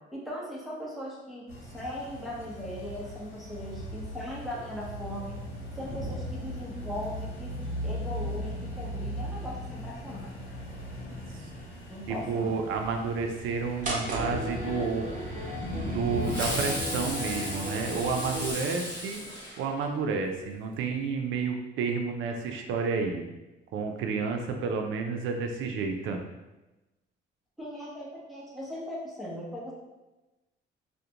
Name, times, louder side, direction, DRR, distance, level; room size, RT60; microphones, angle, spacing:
voice 1, 0.1-5.4 5.7-7.6 7.8-10.3 11.9-12.6 27.6-29.7, left 1 dB, ahead, -6 dB, 0.8 m, -39 dB
sound 1, 1.5-18.5, equal, 85° left, 0.7 m, -38 dB
voice 2, 12.1-15.1 15.8-19.2 19.6-23.2 23.7-26.2, right 5 dB, 80° right, 4 dB, 0.4 m, -30 dB
sound 2, 13.8-18.5, equal, 40° right, 0.7 m, -36 dB
Fireworks, 16.2-20.1, equal, 20° left, 1.4 m, -35 dB
2.4 x 2.1 x 2.8 m, 1.1 s
cardioid pair, 90°, 20 cm